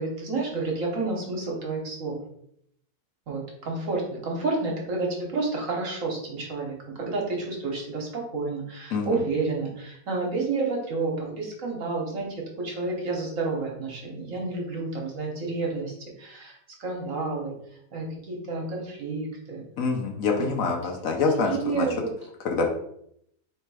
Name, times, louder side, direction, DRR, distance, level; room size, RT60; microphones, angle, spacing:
voice 1, 0.0-2.2 3.3-17.5 17.9-19.6 20.4-20.5 21.4-22.1, right 3 dB, 60° right, -1 dB, 1.3 m, -30 dB
voice 2, 19.8-21.9 22.4-22.7, left 4 dB, 65° left, 2 dB, 1.0 m, -25 dB
3.3 x 3.2 x 4.7 m, 0.73 s
omnidirectional pair, 1.7 m